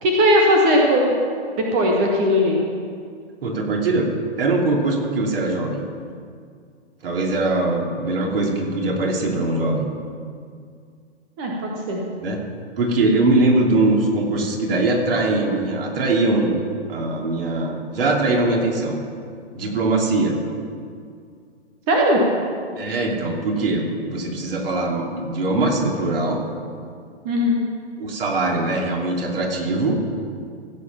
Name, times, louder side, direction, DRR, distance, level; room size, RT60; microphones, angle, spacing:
voice 1, 0.0-1.1 1.7-2.6 11.4-12.0 21.9-22.2 27.2-27.6, equal, 5° right, 0 dB, 0.3 m, -18 dB
voice 2, 3.4-4.1 4.4-5.8 7.0-9.9 12.2-12.4 12.8-16.6 16.9-19.0 19.5-20.4 22.8-26.4 28.0-30.0, right 2 dB, 55° right, 0 dB, 3.0 m, -21 dB
15.5 x 7.5 x 6.9 m, 2.2 s
figure-of-eight pair, 125°, 34 cm